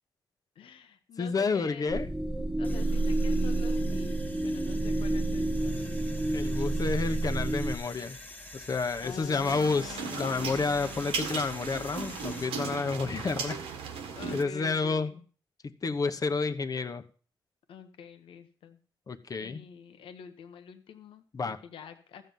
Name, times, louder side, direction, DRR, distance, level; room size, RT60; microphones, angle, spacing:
voice 1, 0.5-2.0 2.6-5.9 9.0-11.2 14.1-15.2 17.7-18.8 19.4-22.3, left 7 dB, 75° left, 8 dB, 1.1 m, -47 dB
voice 2, 1.2-2.1 6.3-8.2 8.5-13.6 14.3-15.1 15.8-17.0 19.1-19.6 21.3-21.6, left 4 dB, 40° left, 9 dB, 1.1 m, -30 dB
sound 1, 1.9-7.8, right 2 dB, 10° right, 1.4 m, -29 dB
sound 2, 2.6-12.5, left 1 dB, 20° left, 1.8 m, -47 dB
sound 3, 9.4-14.4, right 5 dB, 90° right, 1.6 m, -37 dB
13.5 x 7.6 x 5.5 m, 0.41 s
supercardioid pair, 65°, 9 cm